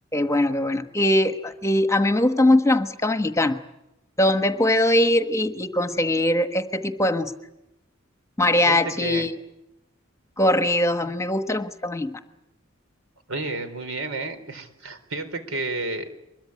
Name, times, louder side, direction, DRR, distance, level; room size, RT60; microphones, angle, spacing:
voice 1, 0.1-3.6 4.2-7.3 8.4-9.3 10.4-12.2, left 1 dB, 15° left, 9 dB, 1.2 m, -21 dB
voice 2, 8.6-9.3 11.0-11.1 13.3-16.1, right 2 dB, 75° right, 9 dB, 4.1 m, -31 dB
24.5 x 22.5 x 9.8 m, 0.91 s
head